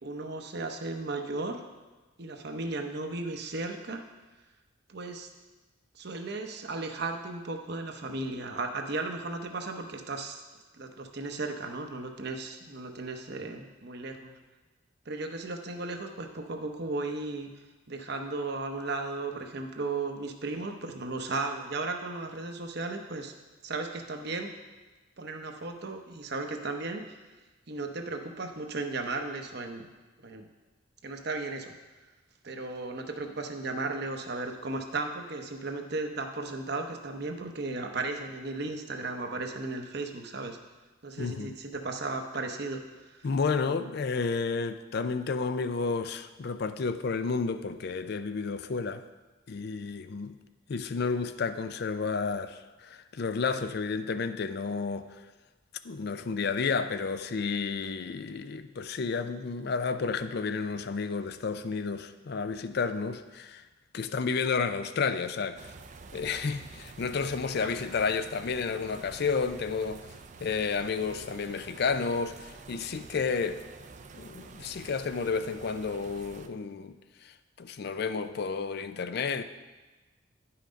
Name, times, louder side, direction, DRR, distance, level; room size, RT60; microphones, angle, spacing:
voice 1, 0.0-1.6 2.2-4.0 4.9-5.3 5.9-10.4 10.8-14.3 15.1-17.5 17.9-23.3 23.6-24.5 25.2-27.2 27.7-29.8 30.2-30.5 31.0-31.7 32.4-40.6 41.0-43.3 67.6-67.7, right 3 dB, 55° right, 0.8 m, -35 dB
voice 2, 41.2-41.5 43.2-49.0 49.5-50.4 50.7-55.2 55.8-63.6 63.9-65.7 66.1-70.1 70.4-73.6 74.1-77.0 77.2-79.4, left 5 dB, 50° left, 0.4 m, -31 dB
sound 1, 65.6-76.5, right 4 dB, 35° right, 0.4 m, -48 dB
9.8 x 5.7 x 5.2 m
head